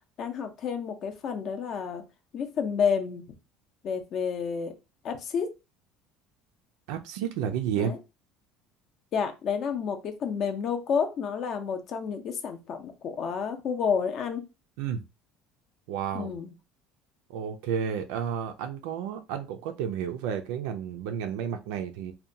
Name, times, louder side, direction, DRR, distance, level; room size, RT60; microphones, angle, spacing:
voice 1, 0.2-2.0 2.3-3.2 3.8-4.7 5.0-5.5 7.8-8.0 9.1-14.5 16.1-16.5, left 6 dB, 45° left, 0.5 m, -30 dB
voice 2, 6.9-7.9 14.8-15.0 15.9-16.3 17.3-22.1, right 8 dB, 80° right, 0.3 m, -31 dB
2.7 x 2.1 x 2.6 m
cardioid pair, 145°, 0 cm